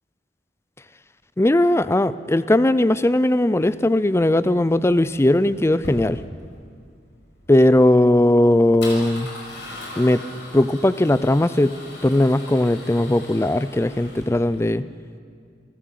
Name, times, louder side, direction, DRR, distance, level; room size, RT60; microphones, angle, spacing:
voice 1, 1.4-6.2 7.5-9.3 10.0-10.2 10.5-11.8 12.0-14.8, left 1 dB, 15° left, 15 dB, 0.5 m, -18 dB
Male speech man speaking / Car / Engine starting, 3.5-14.6, left 2 dB, 70° left, 5.5 m, -41 dB
27.5 x 14.0 x 7.6 m, 2.2 s
head